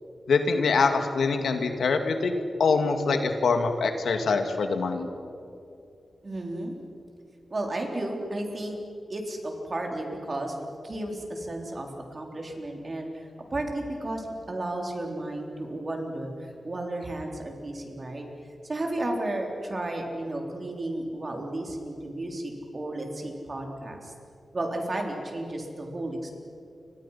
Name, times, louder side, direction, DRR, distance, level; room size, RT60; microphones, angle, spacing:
voice 1, 0.3-2.3 2.6-5.1, left 4 dB, 85° left, 5 dB, 2.3 m, -24 dB
voice 2, 6.2-6.8 7.5-8.8 9.1-18.2 18.6-24.1 24.5-26.3, right 1 dB, 35° right, 1 dB, 3.9 m, -33 dB
29.5 x 25.0 x 5.9 m, 2.5 s
wide cardioid pair, 135°, 0 cm